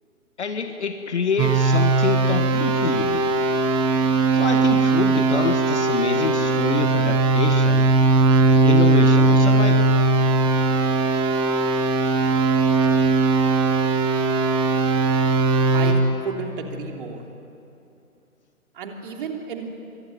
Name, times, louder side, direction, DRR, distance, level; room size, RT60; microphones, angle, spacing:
voice 1, 0.4-3.3 4.3-7.9 8.6-9.9, left 6 dB, 50° left, 7 dB, 1.6 m, -26 dB
sound 1, 1.4-15.9, right 3 dB, 10° right, 1.2 m, -19 dB
voice 2, 15.7-17.2 18.7-19.7, right 6 dB, 35° right, 3 dB, 3.2 m, -32 dB
25.5 x 22.5 x 9.4 m, 2.7 s
figure-of-eight pair, 140°, 44 cm